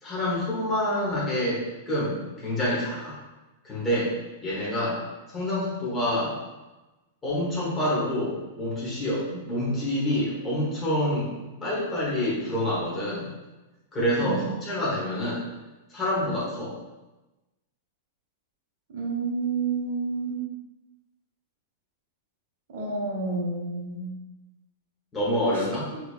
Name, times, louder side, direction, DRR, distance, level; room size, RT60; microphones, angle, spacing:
voice 1, 0.0-3.2 3.6-4.1 4.4-5.0 5.3-6.4 7.2-11.3 11.6-13.3 13.9-15.4 15.9-16.7 25.1-25.8, left 1 dB, 10° left, -8 dB, 1.1 m, -27 dB
voice 2, 14.2-14.5 18.9-20.4 22.7-24.2 25.4-25.7, right 3 dB, 60° right, -2 dB, 1.0 m, -30 dB
4.3 x 2.8 x 2.4 m, 1.1 s
supercardioid pair, 175°, 0 cm